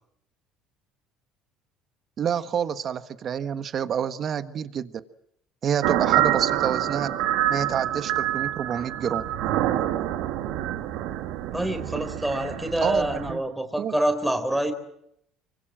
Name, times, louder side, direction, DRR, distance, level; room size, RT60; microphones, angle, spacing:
voice 1, 2.2-4.9 5.6-7.1 7.5-9.2 12.8-13.4 13.8-14.0, right 8 dB, 45° right, 11 dB, 1.5 m, -28 dB
sound 1, 5.8-13.4, right 12 dB, 75° right, 1.7 m, -26 dB
voice 2, 11.5-14.7, right 1 dB, 5° right, 6 dB, 3.9 m, -26 dB
24.5 x 24.5 x 7.7 m, 0.75 s
supercardioid pair, 90°, 0 cm